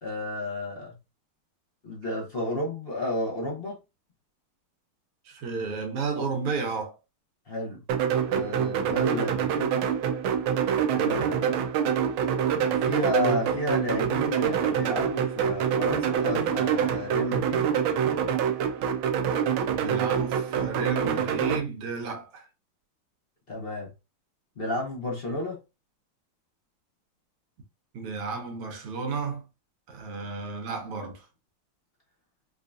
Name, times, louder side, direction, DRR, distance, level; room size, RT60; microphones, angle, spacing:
voice 1, 0.0-0.9 1.8-3.8 7.5-7.8 8.3-9.8 10.9-11.6 12.7-17.7 23.5-23.9 24.6-25.6, left 1 dB, 55° left, 0.6 m, -32 dB
voice 2, 5.3-7.0 19.7-22.5 27.9-29.4 29.9-31.3, right 4 dB, 90° right, 2.0 m, -32 dB
sound 1, 7.9-21.6, right 8 dB, 75° right, 1.3 m, -26 dB
5.2 x 2.3 x 2.6 m
omnidirectional pair, 2.4 m